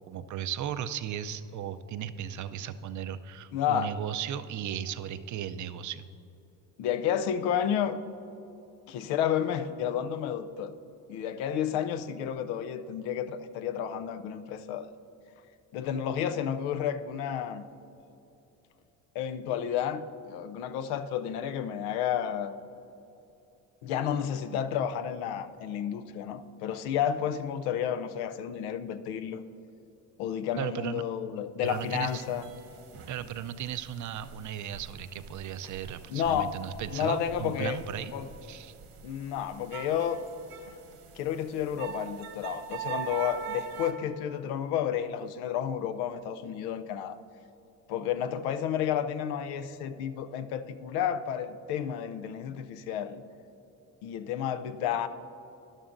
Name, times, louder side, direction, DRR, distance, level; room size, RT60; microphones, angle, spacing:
voice 1, 0.0-6.1 30.6-31.0 31.6-32.2 33.1-38.1 38.4-38.7, right 9 dB, 50° right, 13 dB, 0.5 m, -36 dB
voice 2, 3.5-3.9 6.8-8.0 8.9-10.7 11.1-14.9 15.7-17.7 19.1-22.6 23.8-29.4 30.2-32.4 36.1-36.6 36.9-37.8 38.1-38.3 39.0-40.2 40.7-40.8 41.2-47.2 47.9-53.2 54.0-55.1, left 9 dB, 90° left, 11 dB, 0.6 m, -31 dB
sound 1, 31.6-43.9, right 8 dB, 75° right, 1.4 m, -44 dB
12.5 x 11.0 x 2.6 m, 2.9 s
supercardioid pair, 85°, 38 cm